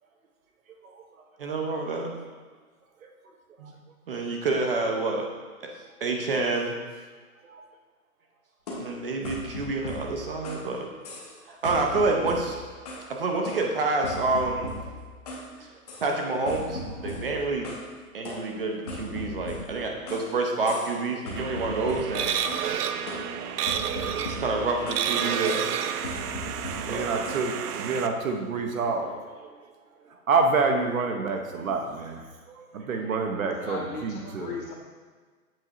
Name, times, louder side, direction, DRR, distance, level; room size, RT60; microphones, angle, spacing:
voice 1, 1.4-2.1 3.6-3.7 4.1-5.3 6.0-6.8 8.8-10.9 11.5-12.6 13.1-14.7 15.6-15.7 16.0-17.7 18.1-22.4 24.3-25.7 26.8-27.1, right 3 dB, 40° right, 1 dB, 0.7 m, -28 dB
sound 1, 8.7-10.7 11.0-11.4 11.6-13.1 13.4-15.5 15.9-16.1 16.5-17.9 18.2-20.3 20.7-21.0 21.3-22.7 23.1-25.1 25.4-25.7 26.0-27.5, left 1 dB, 25° left, 0.7 m, -38 dB
sound 2, 21.4-28.1, right 8 dB, 80° right, 0.6 m, -30 dB
voice 2, 26.9-29.5 30.3-34.5, right 4 dB, 65° right, 3 dB, 1.0 m, -28 dB
voice 3, 33.5-34.7, left 4 dB, 75° left, -5 dB, 1.8 m, -37 dB
7.7 x 4.5 x 2.9 m, 1.5 s
hypercardioid pair, 170°, 45 cm